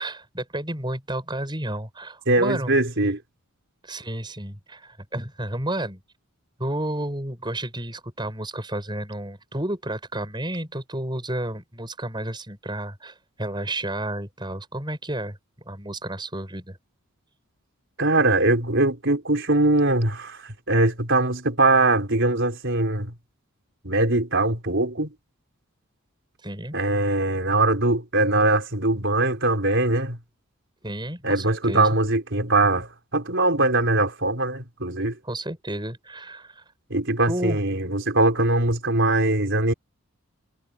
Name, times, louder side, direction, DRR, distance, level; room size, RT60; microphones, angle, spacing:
voice 1, 0.0-2.7 3.8-6.0 6.6-15.4 15.7-16.8 26.4-26.8 30.8-31.9 35.2-36.6 37.3-37.6, right 1 dB, 20° right, 7.4 m, -31 dB
voice 2, 2.3-3.2 18.0-23.1 23.8-25.1 26.7-30.2 31.2-35.2 36.9-39.7, right 2 dB, 55° right, 4.7 m, -21 dB
head